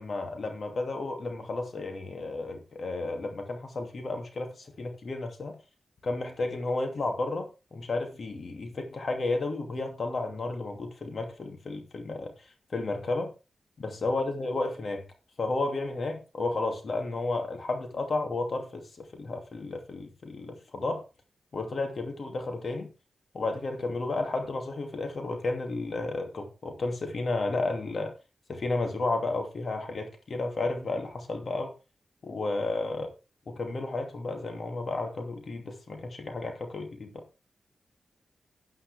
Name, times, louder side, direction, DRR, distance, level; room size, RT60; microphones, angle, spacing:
voice 1, 0.0-5.6 6.0-12.3 12.7-13.3 13.8-15.0 15.4-21.0 21.5-22.9 23.3-28.1 28.5-31.7 32.2-33.1 33.5-37.2, left 2 dB, 55° left, 2.7 m, -32 dB
12.0 x 9.7 x 3.6 m
cardioid pair, 70°, 0 cm